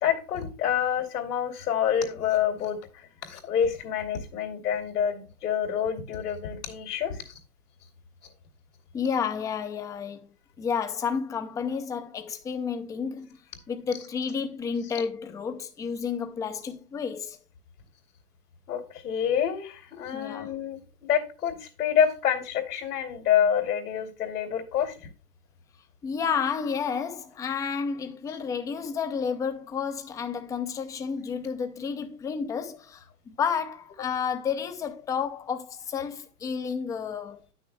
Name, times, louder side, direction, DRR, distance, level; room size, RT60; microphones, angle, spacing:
voice 1, 0.0-7.4 18.7-25.1, left 8 dB, 80° left, 2.6 m, -27 dB
voice 2, 8.9-10.3 10.6-13.3 13.7-17.4 20.1-20.5 26.0-37.4, left 6 dB, 10° left, 0.4 m, -31 dB
10.0 x 6.3 x 3.4 m
hypercardioid pair, 120°, 45 cm